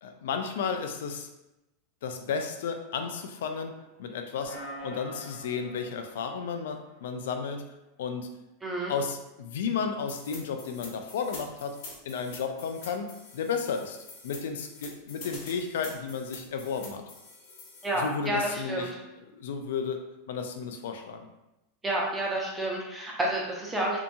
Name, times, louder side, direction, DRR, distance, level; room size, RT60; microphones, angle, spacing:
voice 1, 0.0-1.3 2.0-4.6 4.8-7.7 8.0-8.3 8.9-11.8 12.0-14.0 14.2-17.0 18.0-18.9 19.3-21.3, left 5 dB, 80° left, 6 dB, 0.3 m, -33 dB
sound 1, 3.1-4.0 4.4-7.2, equal, 65° right, 0.8 m, -45 dB
voice 2, 8.6-8.9 17.8-18.9 21.8-24.0, right 1 dB, 15° right, -3 dB, 0.7 m, -30 dB
sound 2, 10.1-18.1, left 4 dB, 60° left, 0.7 m, -46 dB
2.7 x 2.6 x 2.2 m, 0.95 s
supercardioid pair, 125°, 0 cm